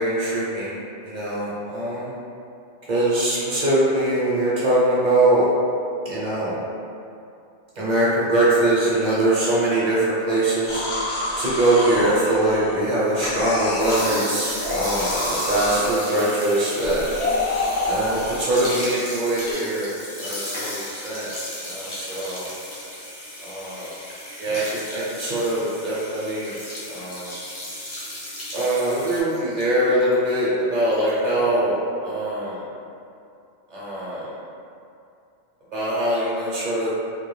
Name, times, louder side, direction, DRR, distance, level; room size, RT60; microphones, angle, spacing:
voice 1, 0.0-2.1 2.9-5.5 6.1-6.6 7.8-10.8 11.4-17.0 17.9-19.9 20.2-21.3 21.6-22.5 23.4-23.8 24.4-26.6 26.9-27.3 28.5-32.6 33.7-34.3 35.7-36.9, right 1 dB, 50° right, -8 dB, 0.6 m, -22 dB
sound 1, 10.7-12.9 13.2-14.1 14.5-16.2 16.8-18.8 19.4-19.5, left 2 dB, 70° left, 0.8 m, -27 dB
sound 2, 13.0-29.2, left 1 dB, 35° left, 0.5 m, -34 dB
2.3 x 2.2 x 3.1 m, 2.5 s
omnidirectional pair, 1.2 m